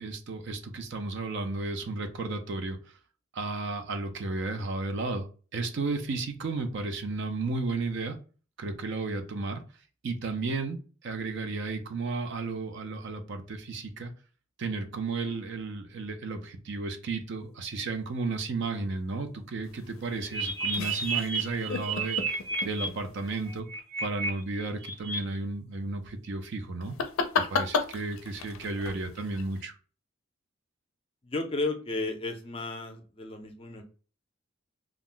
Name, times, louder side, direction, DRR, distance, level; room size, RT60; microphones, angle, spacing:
voice 1, 0.0-2.8 3.3-8.2 8.6-9.6 10.0-14.1 14.6-22.4 22.6-23.7 24.0-27.0 27.4-29.7, right 3 dB, 60° right, 7 dB, 0.4 m, -33 dB
sound 1, 19.6-23.6 26.8-29.6, left 5 dB, 85° left, 0.4 m, -35 dB
sound 2, 20.2-22.8 23.4-24.3 24.6-25.2, right 4 dB, 85° right, 0.9 m, -31 dB
voice 2, 31.2-33.9, left 2 dB, 25° left, 5 dB, 0.4 m, -33 dB
2.4 x 2.1 x 3.6 m, 0.38 s
head